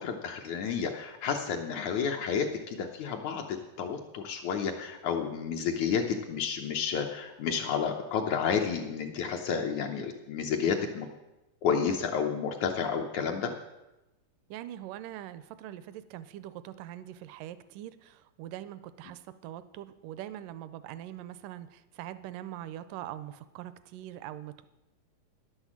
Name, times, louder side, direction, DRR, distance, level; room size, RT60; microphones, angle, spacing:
voice 1, 0.0-11.1 11.6-13.5, left 6 dB, 70° left, 2 dB, 2.0 m, -31 dB
voice 2, 14.5-24.7, right 12 dB, 80° right, 14 dB, 2.2 m, -42 dB
11.0 x 8.1 x 7.3 m, 1.0 s
omnidirectional pair, 3.8 m